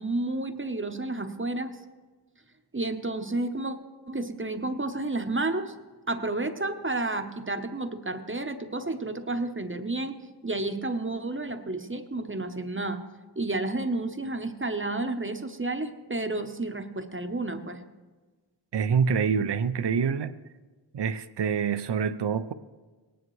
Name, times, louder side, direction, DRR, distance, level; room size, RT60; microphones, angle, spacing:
voice 1, 0.0-1.8 2.7-3.8 4.1-5.7 6.1-10.2 10.4-13.0 13.4-17.8, right 2 dB, 30° right, 0.8 m, -31 dB
voice 2, 18.7-20.3 20.9-22.5, right 6 dB, 75° right, 0.6 m, -26 dB
18.5 x 10.0 x 3.1 m
wide cardioid pair, 50°, 42 cm